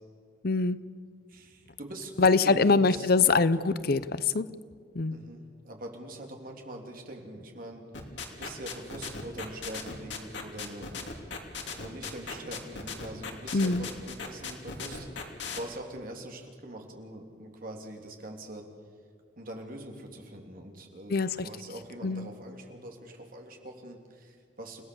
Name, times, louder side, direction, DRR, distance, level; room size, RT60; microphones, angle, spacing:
voice 1, 0.4-0.8 2.2-4.5 4.9-5.2 13.5-13.9 21.1-21.5 22.0-22.3, left 4 dB, 55° left, 15 dB, 0.7 m, -24 dB
voice 2, 1.3-3.3 3.5-3.6 5.1-7.9 8.3-10.9 11.7-15.1 15.6-18.7 19.4-24.8, right 1 dB, 50° right, 2 dB, 3.4 m, -43 dB
sound 1, 7.9-15.6, left 5 dB, 85° left, 3.0 m, -37 dB
29.5 x 16.5 x 7.1 m, 2.1 s
head